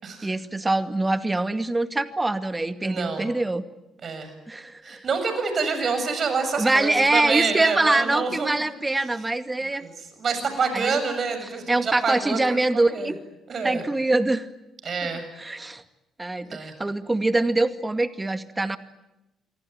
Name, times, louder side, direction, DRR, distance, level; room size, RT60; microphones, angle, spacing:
voice 1, 0.2-3.6 4.5-5.1 6.6-9.8 10.7-11.0 11.7-13.2 13.6-14.5 15.4-15.8 16.2-18.8, right 2 dB, 20° right, 10 dB, 2.2 m, -24 dB
voice 2, 2.8-3.3 4.0-4.3 4.8-8.5 9.7-13.1 13.5-13.8 14.8-15.2 16.4-16.8, right 5 dB, 50° right, 8 dB, 7.0 m, -27 dB
27.0 x 24.0 x 9.1 m, 0.96 s
hypercardioid pair, 45°, 0 cm